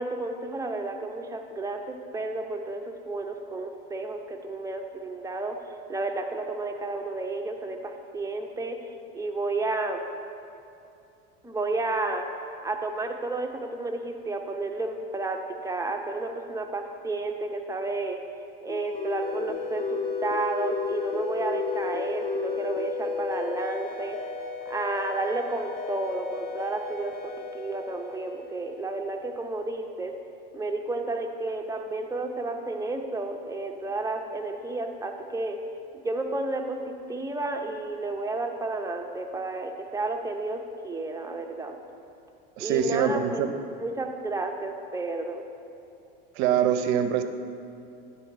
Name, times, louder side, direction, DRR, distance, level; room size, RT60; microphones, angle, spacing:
voice 1, 0.0-10.0 11.4-12.3 12.6-18.2 18.6-24.2 24.7-30.1 30.5-35.6 36.0-41.8 42.6-43.4 43.8-45.4, right 2 dB, 10° right, 3 dB, 0.6 m, -32 dB
sound 1, 18.7-29.0, left 4 dB, 30° left, 1.0 m, -33 dB
voice 2, 42.6-43.5 46.4-47.2, right 8 dB, 60° right, 9 dB, 0.6 m, -24 dB
10.5 x 4.0 x 4.4 m, 2.7 s
hypercardioid pair, 90°, 29 cm